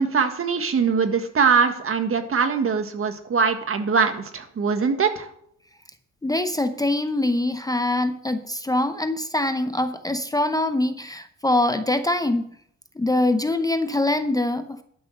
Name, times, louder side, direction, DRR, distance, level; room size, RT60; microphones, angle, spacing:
voice 1, 0.0-5.3, right 5 dB, 45° right, 7 dB, 1.6 m, -22 dB
voice 2, 6.2-12.5 13.0-14.8, left 1 dB, 10° left, 9 dB, 0.7 m, -23 dB
12.0 x 6.2 x 6.5 m, 0.67 s
cardioid pair, 90°, 30 cm